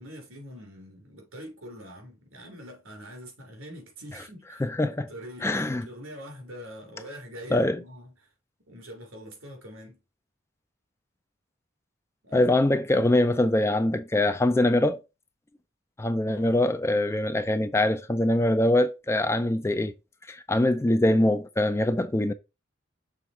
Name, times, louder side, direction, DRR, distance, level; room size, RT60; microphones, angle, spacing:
voice 1, 0.0-8.3 8.6-10.0 12.2-13.7 16.3-16.6, equal, 80° right, 3.3 m, -44 dB
voice 2, 4.6-5.1 5.4-5.8 7.5-7.8 12.3-15.0 16.0-19.9 20.3-22.3, left 1 dB, 15° left, 0.3 m, -23 dB
6.4 x 3.4 x 4.3 m
head